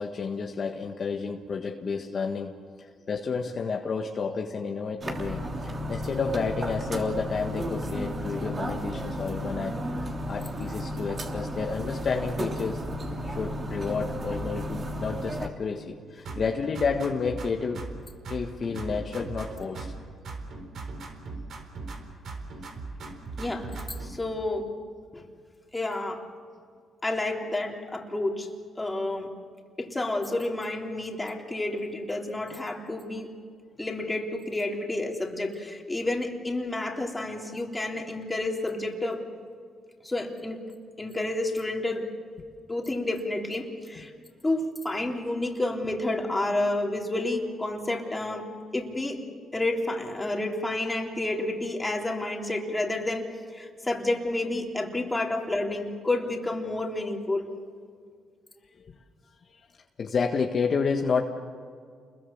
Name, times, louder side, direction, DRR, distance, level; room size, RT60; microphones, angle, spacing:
voice 1, 0.0-2.5 3.1-12.8 13.2-17.9 18.3-19.9 60.0-61.2, left 5 dB, 45° left, 2 dB, 1.6 m, -30 dB
sound 1, 5.0-15.5, equal, 35° right, 3.2 m, -33 dB
sound 2, 16.2-18.0 18.2-20.0 20.2-22.0 22.2-24.1, right 3 dB, 65° right, 4.1 m, -38 dB
voice 2, 23.4-24.7 25.1-25.2 25.7-26.2 27.0-28.5 28.8-29.3 29.8-33.3 33.8-39.2 40.0-40.6 41.0-42.1 42.7-44.1 44.4-48.5 48.7-49.2 49.5-57.5, left 2 dB, 15° left, 1 dB, 3.5 m, -30 dB
29.0 x 22.0 x 7.4 m, 2.1 s
cardioid pair, 90°, 0 cm